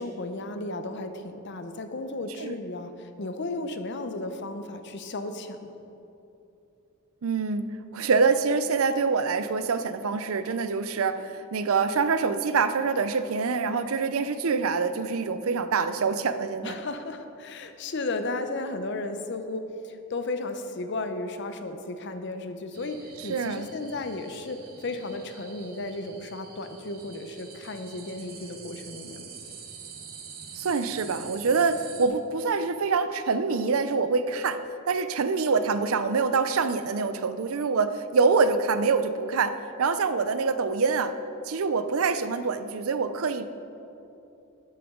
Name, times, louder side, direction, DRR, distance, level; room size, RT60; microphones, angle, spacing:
voice 1, 0.0-2.9 3.2-5.7 16.6-23.0 23.2-24.6 24.8-29.3, left 2 dB, 55° left, 8 dB, 0.7 m, -34 dB
voice 2, 7.2-16.8 23.2-23.7 30.5-34.6 34.9-41.1 41.5-43.5, right 4 dB, 80° right, 11 dB, 0.5 m, -25 dB
sound 1, 22.7-32.1, right 6 dB, 45° right, 1.2 m, -46 dB
13.0 x 9.5 x 3.8 m, 2.9 s
head